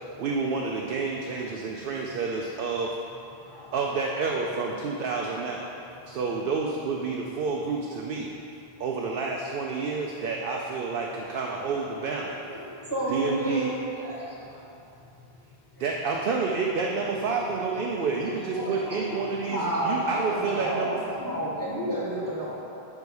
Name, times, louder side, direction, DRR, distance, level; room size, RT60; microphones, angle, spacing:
voice 1, 0.2-2.9 3.7-5.7 6.1-8.3 8.8-12.4 13.1-13.7 15.8-21.2, right 4 dB, 65° right, 0.7 m, -29 dB
voice 2, 0.9-2.7 3.3-3.8 4.1-4.2 5.2-5.4 5.8-6.3 8.6-8.8 12.5-15.9 17.9-19.6 20.2-20.6, left 2 dB, 30° left, 0.5 m, -52 dB
voice 3, 12.9-14.4 17.3-17.4 18.1-18.2 18.5-22.6, right 1 dB, 20° right, 1.3 m, -31 dB
5.5 x 4.7 x 5.3 m
omnidirectional pair, 1.0 m